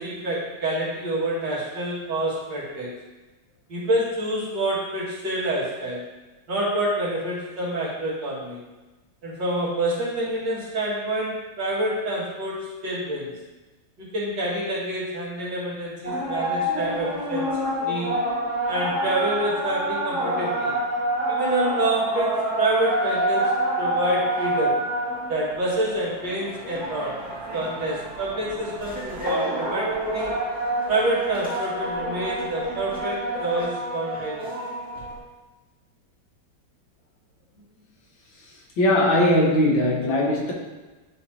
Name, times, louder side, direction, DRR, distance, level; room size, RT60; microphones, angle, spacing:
voice 1, 0.0-2.9 3.7-6.0 6.5-8.6 9.2-13.3 14.0-18.1 18.7-20.7 21.3-24.8 25.3-27.2 27.5-30.3 30.9-34.5, right 1 dB, 70° right, -7 dB, 2.6 m, -27 dB
sound 1, 16.0-35.2, right 1 dB, 5° right, 1.8 m, -27 dB
voice 2, 38.8-40.5, left 1 dB, 90° left, -2 dB, 2.1 m, -19 dB
10.5 x 4.4 x 2.8 m, 1.2 s
omnidirectional pair, 2.0 m